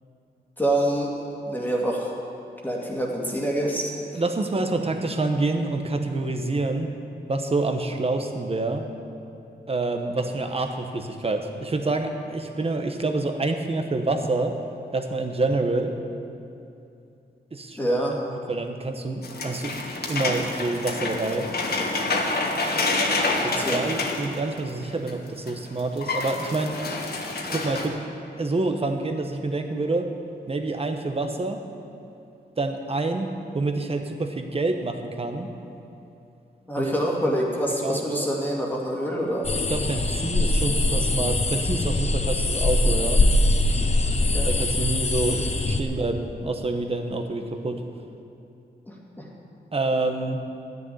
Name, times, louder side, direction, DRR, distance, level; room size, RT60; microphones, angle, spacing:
voice 1, 0.6-1.1 1.5-2.1 2.6-4.2 17.8-18.2 23.3-23.8 36.7-39.5 44.2-44.5 48.9-49.3, right 1 dB, 10° left, -3 dB, 2.1 m, -26 dB
voice 2, 4.1-6.9 7.3-8.9 9.7-14.6 14.9-15.9 17.5-21.5 23.4-26.7 27.5-28.0 28.4-30.1 30.5-31.6 32.6-35.5 36.8-37.0 37.8-38.3 39.7-43.2 44.5-47.8 49.7-50.4, right 2 dB, 35° right, 5 dB, 1.2 m, -27 dB
sound 1, 19.2-25.1 25.5-25.6 25.8-27.9, left 2 dB, 65° left, 1.7 m, -27 dB
sound 2, 39.4-45.8, left 2 dB, 35° left, 1.0 m, -22 dB
12.5 x 7.1 x 9.8 m, 2.7 s
wide cardioid pair, 100°, 18 cm